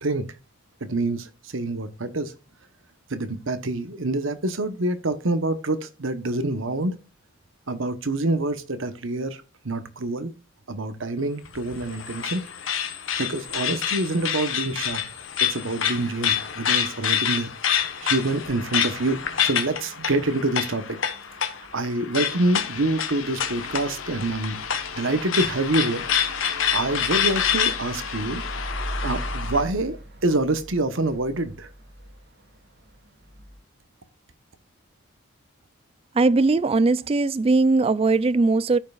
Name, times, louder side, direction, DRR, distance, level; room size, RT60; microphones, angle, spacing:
voice 1, 0.8-2.3 3.1-6.9 7.7-10.3 10.7-12.4 13.2-17.5 18.0-21.5 21.7-24.6 24.9-26.4 26.7-28.4 29.0-31.7, right 2 dB, 65° right, 1.1 m, -26 dB
sound 1, 11.4-29.6, left 8 dB, 65° left, 1.2 m, -27 dB
sound 2, 18.9-33.6, right 1 dB, 50° right, 2.2 m, -41 dB
sound 3, 22.2-28.7, left 8 dB, 85° left, 0.8 m, -40 dB
voice 2, 36.2-38.8, right 3 dB, 25° right, 0.3 m, -20 dB
13.5 x 5.5 x 2.4 m
head